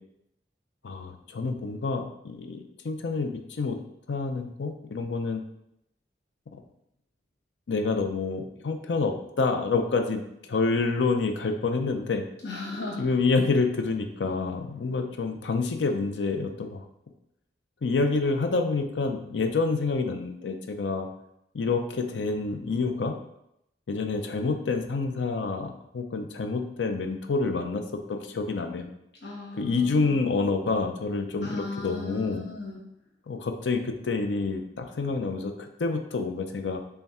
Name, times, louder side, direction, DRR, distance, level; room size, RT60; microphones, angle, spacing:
voice 1, 0.8-3.8 4.1-5.4 6.5-6.6 7.7-12.3 13.0-16.8 17.8-21.1 21.5-23.1 23.9-27.8 28.1-28.9 29.6-32.4 33.3-36.8, left 4 dB, 90° left, 6 dB, 0.5 m, -28 dB
voice 2, 12.4-13.1 29.2-30.2 31.4-32.8, left 2 dB, 75° left, -5 dB, 1.0 m, -37 dB
5.6 x 2.2 x 4.2 m, 0.80 s
head